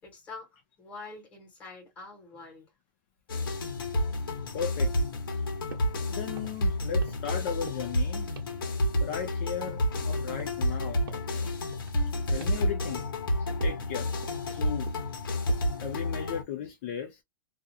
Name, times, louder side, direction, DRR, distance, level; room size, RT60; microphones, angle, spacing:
voice 1, 0.0-2.7, left 3 dB, 10° left, 1.1 m, -45 dB
sound 1, 3.3-16.4, left 1 dB, 85° left, 0.9 m, -30 dB
voice 2, 4.5-4.9 5.3-5.4 6.1-8.3 9.0-11.0 11.3-11.5 12.3-13.0 13.4-14.1 14.5-14.9 15.6-17.2, left 8 dB, 30° left, 0.4 m, -36 dB
sound 2, 5.7-6.0 6.3-6.7 7.0-7.4 7.7-8.0 8.4-8.6 9.0-10.0 10.4-10.7 11.1-11.3 11.7-12.0 12.4-12.7 12.9-13.3 13.6-13.9 14.2-14.6 14.9-15.2 15.5-15.8, right 6 dB, 75° right, 1.0 m, -47 dB
2.4 x 2.3 x 2.5 m
supercardioid pair, 175°, 11 cm